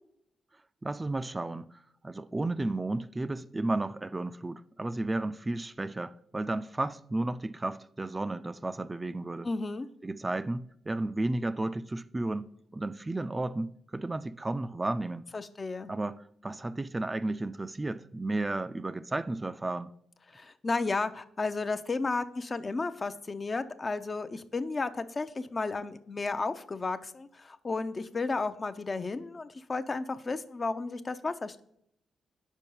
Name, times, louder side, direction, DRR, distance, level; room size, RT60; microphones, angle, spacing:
voice 1, 0.8-9.5 10.0-15.2 15.9-19.9, right 2 dB, 25° right, 0.3 m, -33 dB
voice 2, 9.4-9.9 15.3-15.9 20.3-31.6, left 3 dB, 40° left, 0.5 m, -33 dB
5.4 x 4.5 x 5.4 m
supercardioid pair, 50°, 0 cm